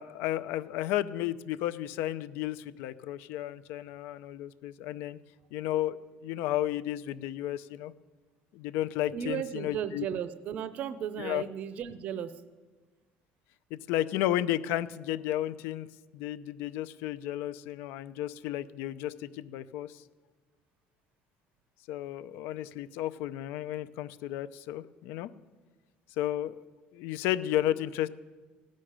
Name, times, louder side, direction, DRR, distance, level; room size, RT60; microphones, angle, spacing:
voice 1, 0.0-5.2 5.5-7.9 8.5-10.0 11.2-11.4 13.7-15.9 16.1-20.0 21.9-25.3 26.2-26.6 26.9-28.1, left 13 dB, 80° left, 14 dB, 0.6 m, -33 dB
voice 2, 9.1-12.4, right 8 dB, 45° right, 13 dB, 0.5 m, -35 dB
15.5 x 6.4 x 10.0 m, 1.3 s
cardioid pair, 170°, 4 cm